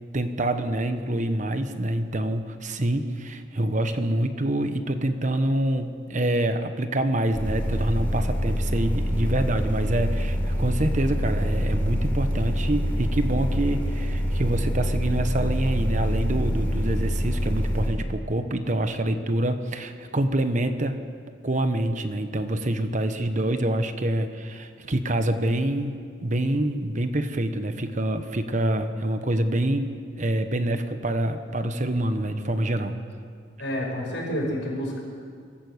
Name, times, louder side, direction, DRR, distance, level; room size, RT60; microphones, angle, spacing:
voice 1, 0.1-21.0 21.4-25.9 26.2-33.0, right 1 dB, 40° right, 9 dB, 1.1 m, -26 dB
sound 1, 7.3-17.9, equal, 10° left, 3.7 m, -26 dB
voice 2, 33.6-35.0, equal, 70° left, -2 dB, 6.4 m, -29 dB
22.5 x 14.0 x 8.2 m, 2.2 s
head